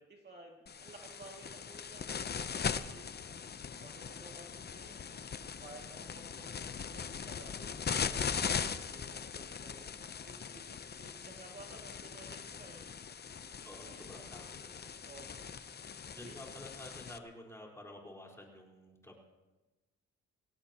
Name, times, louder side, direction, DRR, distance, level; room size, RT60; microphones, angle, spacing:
voice 1, 0.0-3.1 3.8-5.3 5.6-12.8 13.7-14.5 15.1-15.5 16.2-16.4, right 3 dB, 35° right, 0 dB, 2.4 m, -55 dB
sound 1, 0.7-17.2, left 6 dB, 35° left, 0.8 m, -40 dB
voice 2, 13.6-14.9 16.1-19.2, left 1 dB, 10° left, -2 dB, 4.5 m, -51 dB
24.0 x 17.0 x 3.0 m, 1.1 s
cardioid pair, 90°, 30 cm